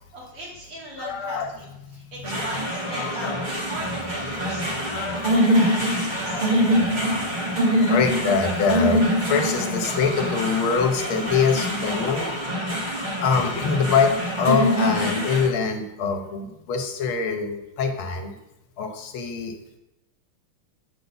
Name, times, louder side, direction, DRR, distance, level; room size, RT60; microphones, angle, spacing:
voice 1, 0.1-6.5, right 1 dB, 85° right, -5 dB, 3.6 m, -39 dB
voice 2, 1.0-1.5 1.8-2.1 2.8-3.4 4.4-5.8 6.2-6.9 7.2-12.3 13.2-18.4 18.8-19.6, left 5 dB, 70° left, 5 dB, 1.7 m, -25 dB
sound 1, 2.2-15.5, equal, 30° right, 1.0 m, -24 dB
8.3 x 3.9 x 6.8 m, 0.94 s
omnidirectional pair, 2.4 m